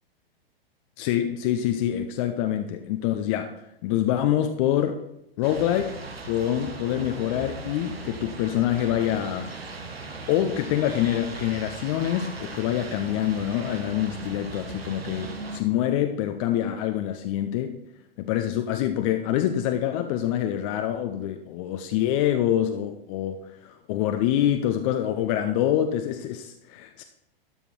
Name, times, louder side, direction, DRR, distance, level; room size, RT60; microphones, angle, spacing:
voice 1, 1.0-3.5 3.8-5.0 5.4-6.0 6.3-9.5 10.3-17.8 18.2-27.0, left 11 dB, 35° left, 6 dB, 0.6 m, -26 dB
sound 1, 5.4-15.6, right 3 dB, 80° right, 1.2 m, -38 dB
12.5 x 5.4 x 4.5 m, 0.83 s
figure-of-eight pair, 105°, 30 cm